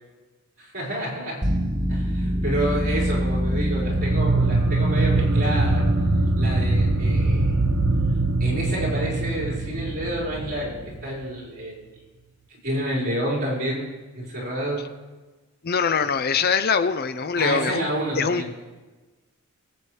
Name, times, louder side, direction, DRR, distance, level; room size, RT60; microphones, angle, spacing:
voice 1, 0.6-1.4 1.9-5.9 6.4-7.5 8.4-11.8 12.5-14.9 17.4-18.5, right 1 dB, 40° right, -6 dB, 5.0 m, -29 dB
sound 1, 1.4-11.0, equal, 20° right, 1.0 m, -26 dB
sound 2, 3.8-11.1, right 3 dB, 65° right, 0.6 m, -24 dB
voice 2, 15.6-17.9 18.2-18.5, left 5 dB, 45° left, 10 dB, 0.5 m, -23 dB
24.0 x 8.6 x 3.3 m, 1.3 s
head